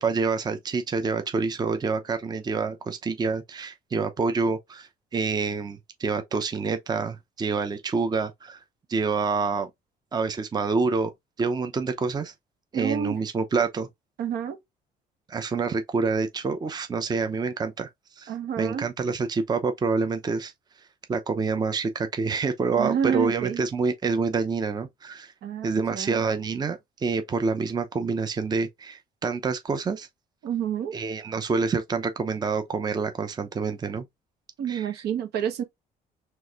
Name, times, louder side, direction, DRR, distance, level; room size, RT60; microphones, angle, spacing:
voice 1, 0.0-8.6 8.9-9.7 10.1-11.1 11.4-12.3 12.7-13.9 15.3-17.9 18.2-20.5 21.1-25.3 25.6-30.1 30.9-34.1 34.7-34.9, right 4 dB, 25° right, 0.6 m, -27 dB
voice 2, 12.7-13.2 14.2-14.6 18.3-18.9 22.8-23.6 25.4-26.2 30.4-30.9 34.6-35.6, right 8 dB, 70° right, 1.1 m, -28 dB
4.6 x 3.3 x 2.4 m
cardioid pair, 110°, 17 cm